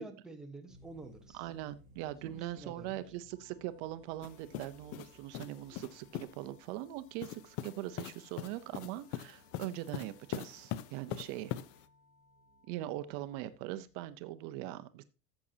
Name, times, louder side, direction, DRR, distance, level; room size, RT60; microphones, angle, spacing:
voice 1, 0.0-1.5 2.2-3.0, right 3 dB, ahead, 3 dB, 0.9 m, -49 dB
sound 1, 0.7-14.3, right 1 dB, 20° right, 3.3 m, -65 dB
voice 2, 1.3-11.5 12.7-15.0, right 14 dB, 60° right, 13 dB, 0.7 m, -41 dB
sound 2, 3.3-13.3, left 2 dB, 40° right, 3.3 m, -68 dB
sound 3, 4.2-6.4 7.2-11.9, left 12 dB, 45° left, 0.6 m, -43 dB
14.0 x 7.3 x 2.8 m, 0.29 s
cardioid pair, 170°, 33 cm